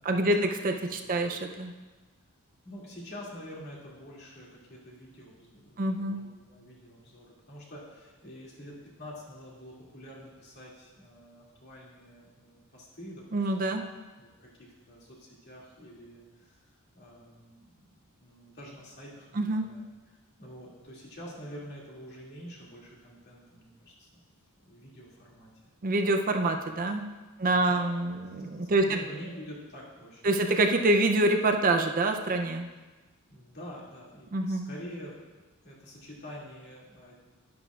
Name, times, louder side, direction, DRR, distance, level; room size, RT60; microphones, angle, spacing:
voice 1, 0.0-1.7 5.8-6.2 13.3-13.8 19.4-19.7 25.8-27.0 27.4-28.8 30.2-32.7 34.3-34.7, right 2 dB, 40° right, 5 dB, 0.5 m, -26 dB
voice 2, 0.9-1.2 2.6-13.8 14.1-17.8 18.2-24.2 24.6-25.7 27.5-28.0 28.6-30.7 33.3-35.2 35.6-37.2, equal, 50° left, -5 dB, 2.4 m, -47 dB
11.0 x 10.5 x 2.4 m, 1.3 s
head